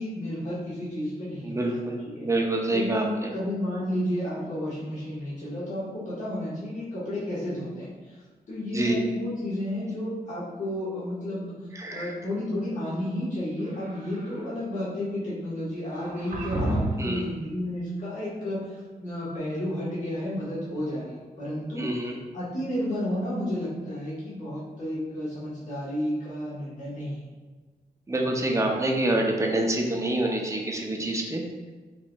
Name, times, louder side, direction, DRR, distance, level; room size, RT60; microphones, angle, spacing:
voice 1, 0.0-2.2 2.7-8.2 8.5-22.1 22.3-27.2, left 1 dB, 50° left, -9 dB, 1.3 m, -32 dB
voice 2, 1.4-3.3 8.7-9.0 11.7-12.1 17.0-17.2 21.8-22.2 28.1-31.4, right 1 dB, 20° right, 1 dB, 0.6 m, -27 dB
sound 1, 13.6-14.5 15.9-17.1, right 1 dB, 55° right, 1.1 m, -31 dB
4.8 x 3.0 x 2.3 m, 1.3 s
cardioid pair, 85°, 16 cm